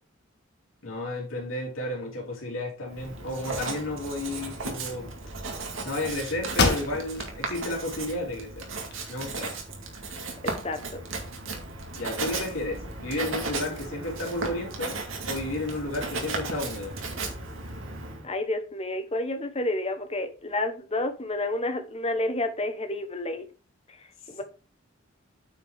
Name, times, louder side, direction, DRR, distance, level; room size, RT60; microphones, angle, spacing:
voice 1, 0.8-5.1 5.8-8.7 9.1-9.6 11.9-15.0 15.3-17.0, left 2 dB, 80° left, -2 dB, 3.0 m, -32 dB
Writing, 2.9-18.3, right 3 dB, 65° right, 2.2 m, -35 dB
sound 1, 6.6-7.4 7.8-7.9 8.5-9.4, left 3 dB, 50° left, 1.7 m, -27 dB
voice 2, 10.6-11.0 18.2-23.4 24.3-24.4, left 2 dB, 30° left, 7 dB, 1.2 m, -30 dB
8.7 x 6.2 x 3.6 m, 0.34 s
head